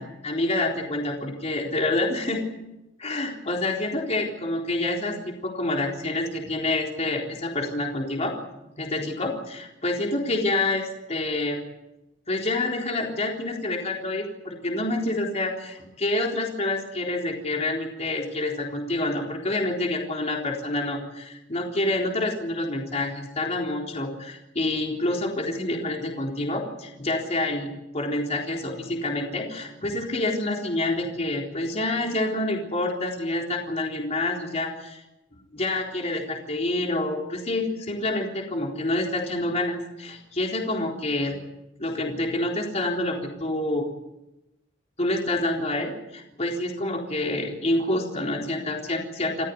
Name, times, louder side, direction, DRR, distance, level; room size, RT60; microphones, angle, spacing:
voice 1, 0.0-2.4 3.0-8.3 8.7-11.6 12.3-35.0 35.5-41.4 41.8-43.9 45.0-49.5, left 2 dB, 35° left, 0 dB, 3.9 m, -27 dB
29.5 x 14.5 x 9.4 m, 0.95 s
head